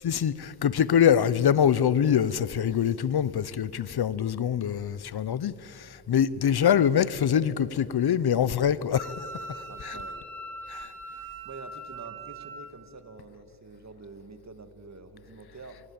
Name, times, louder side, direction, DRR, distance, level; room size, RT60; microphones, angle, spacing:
voice 1, 0.0-10.0 10.7-10.9, left 8 dB, 70° left, 0.7 m, -24 dB
Wind instrument woodwind instrument, 8.9-12.7, right 2 dB, 5° left, 4.6 m, -41 dB
voice 2, 9.6-10.3 11.4-15.8, right 3 dB, 45° right, 1.8 m, -46 dB
24.5 x 17.0 x 8.7 m
wide cardioid pair, 110°, 40 cm